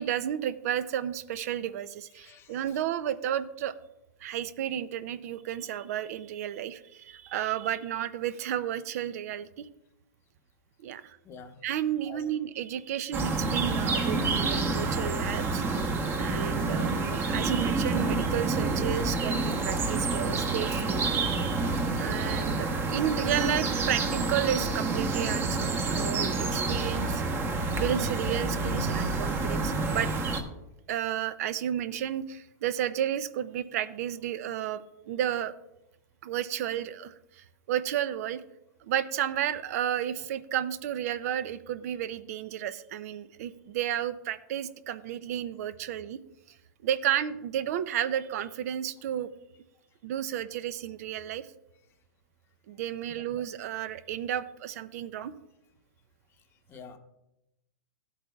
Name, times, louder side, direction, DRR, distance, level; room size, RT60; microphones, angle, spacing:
voice 1, 0.0-3.7 4.2-9.7 10.8-11.2 11.6-15.6 16.1-21.0 22.0-27.3 27.7-30.1 30.9-35.5 36.2-38.4 38.8-46.2 46.8-49.3 50.0-51.5 52.7-55.3, right 10 dB, 55° right, 14 dB, 0.5 m, -32 dB
voice 2, 2.2-2.6 11.2-11.6 12.1-12.2 15.7-15.9 22.3-22.5 53.1-53.2 56.7-57.0, left 5 dB, 25° left, 7 dB, 0.8 m, -47 dB
sound 1, 13.1-30.4, right 3 dB, 25° right, 1.0 m, -28 dB
14.0 x 8.1 x 2.3 m, 0.91 s
hypercardioid pair, 140°, 10 cm